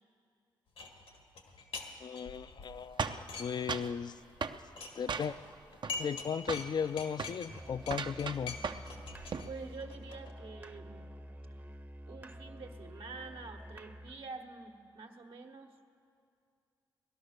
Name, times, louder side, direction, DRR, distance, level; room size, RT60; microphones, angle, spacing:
sound 1, 0.8-1.9 2.1-3.9 4.2-6.3 6.5-10.3, left 4 dB, 85° left, 1.8 m, -45 dB
voice 1, 2.0-3.0 3.4-4.2 5.0-5.3 6.0-8.6, left 7 dB, 50° left, 15 dB, 0.4 m, -36 dB
sound 2, 3.0-4.0 4.4-4.6 5.1-5.5 5.8-6.2 6.5-6.7 7.1-7.4 7.8-8.9 9.2-9.5, right 5 dB, 55° right, 0.7 m, -37 dB
Musical instrument, 7.5-14.2, equal, 20° right, 0.8 m, -49 dB
voice 2, 9.4-11.1 12.1-15.8, right 4 dB, 70° right, 2 dB, 1.4 m, -47 dB
18.0 x 12.0 x 6.5 m, 2.4 s
cardioid pair, 55°, 10 cm